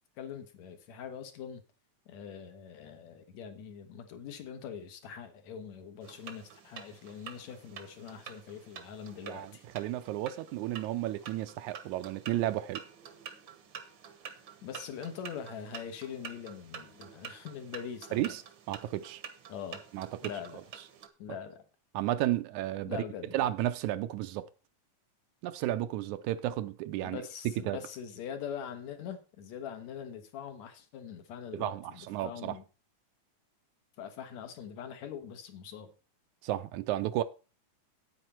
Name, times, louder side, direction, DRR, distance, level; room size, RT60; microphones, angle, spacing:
voice 1, 0.2-1.6 2.1-9.7 14.6-18.3 19.5-19.8 20.2-20.6 21.2-21.6 22.9-23.3 27.0-32.6 34.0-35.9, left 8 dB, 70° left, 2.5 m, -43 dB
sound 1, 6.0-21.1, right 7 dB, 55° right, 1.3 m, -48 dB
voice 2, 9.3-12.8 18.1-18.4 18.7-19.2 19.9-20.1 21.9-23.0 23.3-24.5 25.4-27.3 27.6-27.8 31.5-32.6 36.4-37.2, right 14 dB, 80° right, 2.0 m, -33 dB
9.4 x 8.9 x 4.3 m
omnidirectional pair, 3.4 m